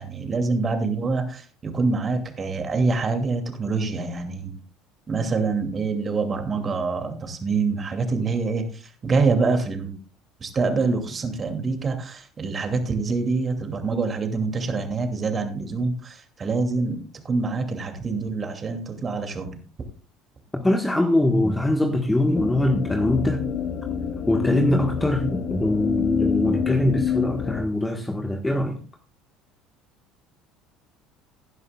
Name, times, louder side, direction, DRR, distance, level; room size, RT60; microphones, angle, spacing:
voice 1, 0.0-4.5 5.1-9.9 10.4-19.6, right 4 dB, 35° right, 2.6 m, -25 dB
voice 2, 20.5-23.4 24.3-28.8, left 1 dB, 10° left, 1.4 m, -22 dB
sound 1, 22.3-27.7, left 7 dB, 50° left, 1.1 m, -27 dB
17.0 x 11.0 x 2.4 m
hypercardioid pair, 65°, 0 cm